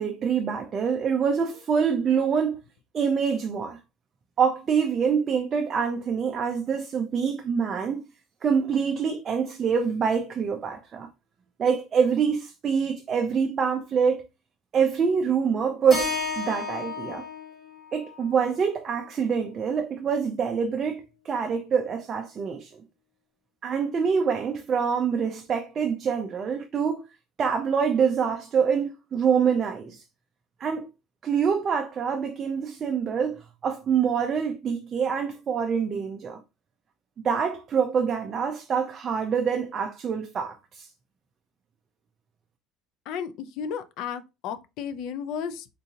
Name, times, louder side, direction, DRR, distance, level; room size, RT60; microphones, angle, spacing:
voice 1, 0.0-2.6 2.9-3.8 4.4-8.0 8.4-11.1 11.6-14.3 14.7-17.2 17.9-22.8 23.6-27.0 27.4-30.0 30.6-30.9 31.2-36.4 37.2-40.9, right 6 dB, 25° right, 0.4 m, -25 dB
Keyboard (musical), 15.9-20.1, left 4 dB, 20° left, 1.3 m, -35 dB
voice 2, 43.1-45.7, left 7 dB, 60° left, 0.4 m, -33 dB
3.7 x 2.6 x 2.8 m
cardioid pair, 170°, 0 cm